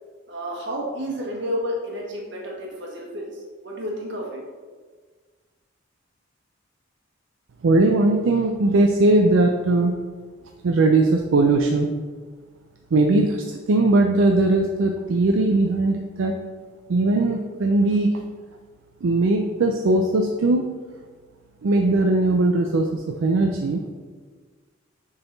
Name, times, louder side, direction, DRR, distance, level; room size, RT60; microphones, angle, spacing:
voice 1, 0.3-4.4, equal, 60° right, -2 dB, 1.5 m, -31 dB
voice 2, 7.6-9.9 10.6-11.9 12.9-16.4 16.9-18.1 19.0-20.7 21.6-23.8, right 2 dB, 80° right, 3 dB, 0.4 m, -19 dB
6.9 x 3.9 x 3.9 m, 1.5 s
head